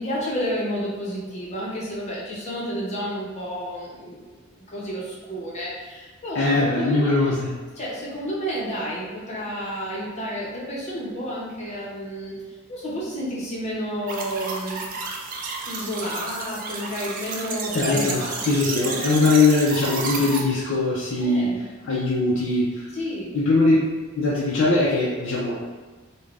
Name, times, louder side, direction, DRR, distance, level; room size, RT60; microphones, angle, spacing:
voice 1, 0.0-7.3 7.8-12.3 12.7-14.9 15.7-18.9 21.2-21.6 22.9-23.4, equal, 35° left, -5 dB, 0.7 m, -31 dB
voice 2, 6.3-7.5 17.7-22.9 23.3-23.8 24.2-25.6, left 3 dB, 65° left, -6 dB, 0.5 m, -21 dB
sound 1, 14.1-20.4, right 4 dB, 40° right, 0.3 m, -31 dB
3.2 x 2.1 x 2.4 m, 1.4 s
head